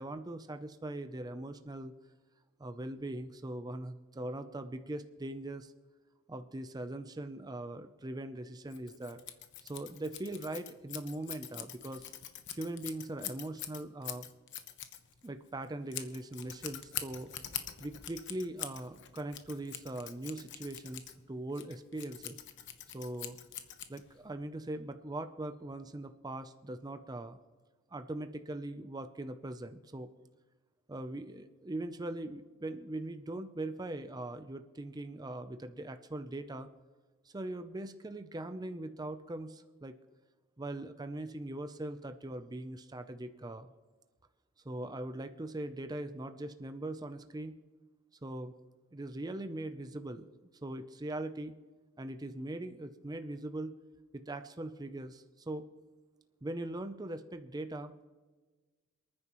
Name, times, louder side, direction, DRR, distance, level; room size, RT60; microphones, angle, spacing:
voice 1, 0.0-1.9 2.6-5.7 6.3-9.2 9.6-12.1 12.5-14.3 15.2-17.3 17.8-22.4 22.9-23.4 23.9-27.4 27.9-30.1 30.9-36.7 37.2-39.9 40.6-43.7 44.6-47.6 48.2-48.5 48.9-50.3 50.6-51.6 52.0-53.8 54.1-55.7 56.4-57.9, right 1 dB, 20° right, 9 dB, 0.5 m, -41 dB
Scissors, 8.7-24.3, left 10 dB, 60° left, 1.0 m, -45 dB
28.0 x 9.7 x 3.0 m, 1.3 s
head